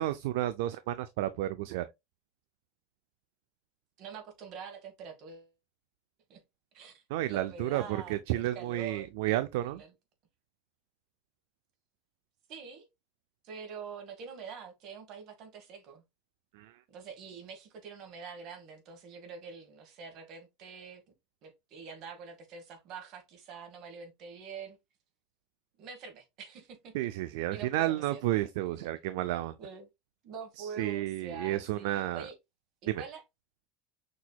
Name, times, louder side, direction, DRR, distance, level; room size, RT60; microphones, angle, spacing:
voice 1, 0.0-1.8 7.1-9.8 16.5-16.8 26.9-29.5 30.6-32.3 32.9-33.0, right 14 dB, 70° right, 0.3 m, -31 dB
voice 2, 4.0-5.5 6.3-6.4 6.7-9.1 9.6-9.9 12.5-12.9 13.4-16.0 16.9-21.0 21.4-24.8 25.8-26.9 27.5-28.2 28.8-28.9 29.6-29.9 30.2-32.4 32.9-33.2, right 6 dB, 45° right, 1.3 m, -45 dB
6.1 x 2.8 x 2.2 m
supercardioid pair, 140°, 0 cm